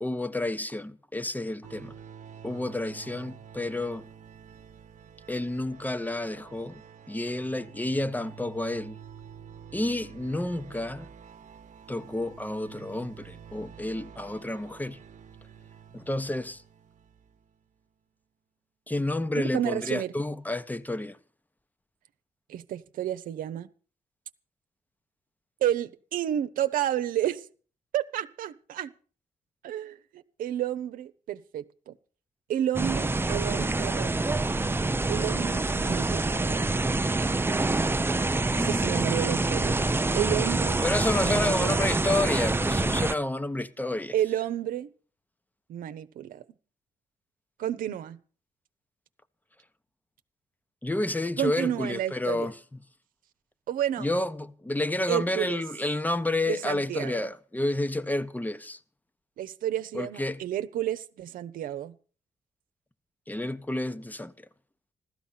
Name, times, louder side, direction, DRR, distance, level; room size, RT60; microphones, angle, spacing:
voice 1, 0.0-1.9 2.4-4.1 5.3-6.8 7.1-9.0 9.7-11.1 11.9-15.0 15.9-16.6 18.9-21.2 38.6-39.2 40.8-44.1 50.8-52.5 54.0-58.8 59.9-60.4 63.3-64.3, left 2 dB, 10° left, 1.0 m, -30 dB
sound 1, 1.6-17.5, right 8 dB, 60° right, 1.0 m, -49 dB
voice 2, 19.3-20.1 22.5-23.7 25.6-27.5 27.9-28.9 29.6-32.0 32.5-34.2 35.1-36.7 38.5-39.8 40.1-40.9 41.2-42.0 44.1-44.9 45.7-46.4 47.6-48.2 51.4-52.5 53.7-54.1 55.1-55.6 56.5-57.3 59.4-62.0, right 11 dB, 85° right, 0.8 m, -31 dB
sound 2, 32.7-43.1, right 2 dB, 15° right, 0.6 m, -26 dB
15.0 x 13.0 x 5.8 m
cardioid pair, 70°, 14 cm